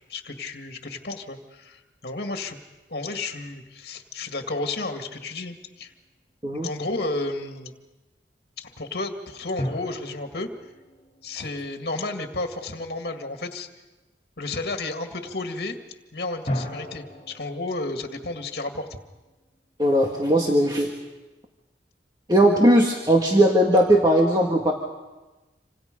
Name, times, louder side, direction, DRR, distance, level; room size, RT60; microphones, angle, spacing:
voice 1, 0.1-2.6 2.9-5.9 6.5-7.7 8.6-10.5 11.2-13.7 14.4-15.8 16.1-18.9, left 2 dB, 60° left, 5 dB, 2.1 m, -32 dB
sound 1, 5.6-5.9 9.6-12.4 16.5-19.7, equal, 35° left, 3.6 m, -37 dB
voice 2, 19.8-20.9 22.3-24.7, right 1 dB, 25° right, 0 dB, 1.7 m, -18 dB
27.0 x 26.5 x 5.3 m, 1.1 s
head